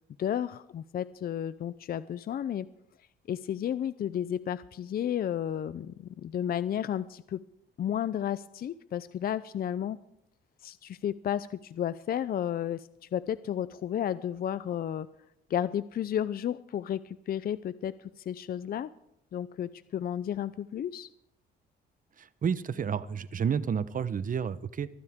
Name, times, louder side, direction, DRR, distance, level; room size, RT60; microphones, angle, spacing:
voice 1, 0.2-2.7 3.3-7.4 7.8-10.0 10.6-15.1 15.5-18.9 19.3-21.1, left 10 dB, 50° left, 16 dB, 0.5 m, -32 dB
voice 2, 22.2-24.9, right 7 dB, 45° right, 15 dB, 0.9 m, -30 dB
23.0 x 14.5 x 3.6 m, 0.78 s
cardioid pair, 90°, 20 cm